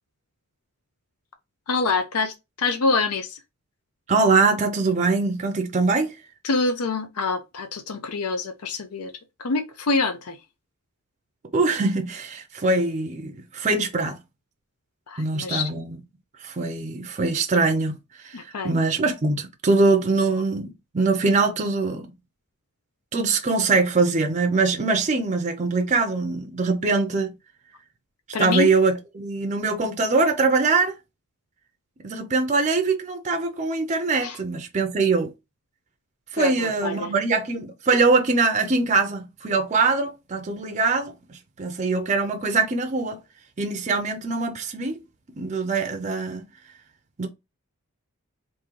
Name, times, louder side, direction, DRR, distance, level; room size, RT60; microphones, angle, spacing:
voice 1, 1.7-3.4 6.4-9.1 9.4-10.4 15.1-15.7 18.3-18.7 28.3-28.7 34.2-34.4 36.4-37.1, left 3 dB, 80° left, 0.6 m, -26 dB
voice 2, 4.1-6.2 11.5-14.2 15.2-16.0 16.4-22.1 23.1-27.3 28.4-31.0 32.0-35.3 36.3-43.2 43.6-45.0 45.4-46.5 47.2-47.3, right 3 dB, 30° right, 0.5 m, -23 dB
3.6 x 2.6 x 3.1 m
head